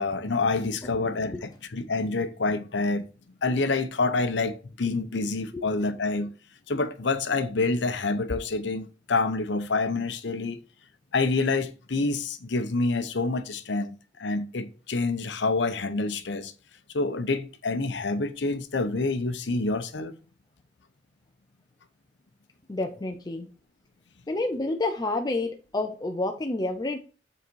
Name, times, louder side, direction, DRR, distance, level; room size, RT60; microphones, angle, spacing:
voice 1, 0.0-3.1 3.4-6.3 6.7-10.6 11.1-16.5 16.9-20.1, left 3 dB, 70° left, 0.8 m, -27 dB
voice 2, 1.0-1.4 5.5-5.6 22.7-23.5 24.3-27.0, left 2 dB, 20° left, 0.5 m, -29 dB
7.7 x 4.0 x 4.6 m
head